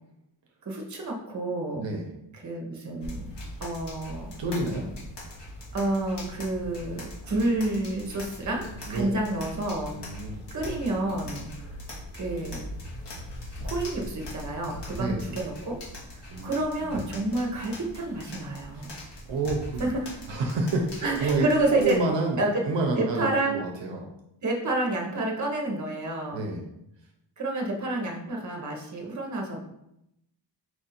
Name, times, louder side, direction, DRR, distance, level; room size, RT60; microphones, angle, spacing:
voice 1, 0.6-1.8 2.3-3.3 3.6-4.4 5.7-9.9 10.5-11.5 12.1-12.7 13.6-15.8 16.1-18.9 19.8-20.1 21.0-22.0 22.4-22.6 22.9-23.6 24.4-26.5 27.4-29.6, right 2 dB, 40° right, 0 dB, 0.9 m, -29 dB
voice 2, 1.8-2.1 4.4-4.9 8.8-9.1 9.9-10.4 13.4-13.5 14.9-15.3 16.3-16.5 18.7-18.8 19.3-19.8 20.3-21.4 21.7-22.4 22.6-24.1 26.3-26.6, right 3 dB, 75° right, 1 dB, 0.7 m, -29 dB
sound 1, 3.0-22.0, left 1 dB, 65° left, 1.4 m, -41 dB
4.7 x 2.5 x 4.2 m, 0.82 s
wide cardioid pair, 155°, 45 cm